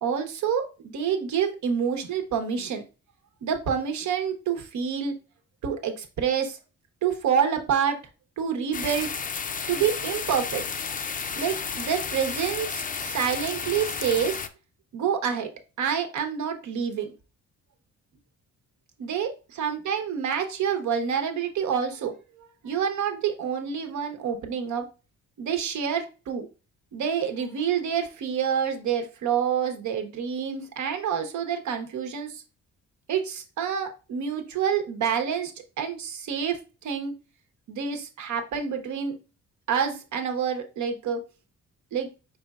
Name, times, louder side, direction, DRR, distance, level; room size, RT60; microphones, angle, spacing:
voice 1, 0.0-2.8 3.4-5.2 5.6-6.6 7.0-8.0 8.4-9.1 9.7-10.6 11.3-14.4 14.9-15.5 15.8-17.1 19.0-24.8 25.4-26.5 26.9-32.4 33.1-37.2 37.7-39.1 39.7-41.2 41.9-42.1, right 7 dB, 70° right, 6 dB, 1.1 m, -27 dB
sound 1, 8.7-14.5, left 6 dB, 30° left, 0.5 m, -32 dB
4.9 x 4.2 x 2.4 m, 0.32 s
cardioid pair, 90°, 30 cm